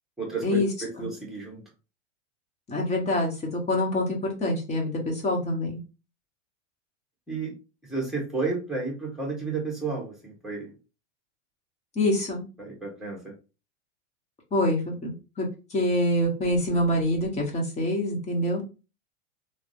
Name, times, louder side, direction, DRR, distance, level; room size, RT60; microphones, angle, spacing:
voice 1, 0.2-1.6 7.3-7.5 7.9-10.7 12.6-13.3, right 4 dB, ahead, -1 dB, 1.2 m, -32 dB
voice 2, 2.7-3.3 3.7-5.8 12.0-12.4 14.5-15.1 15.4-18.6, left 1 dB, 20° left, 0 dB, 1.0 m, -25 dB
3.1 x 2.1 x 2.7 m, 0.30 s
hypercardioid pair, 125°, 37 cm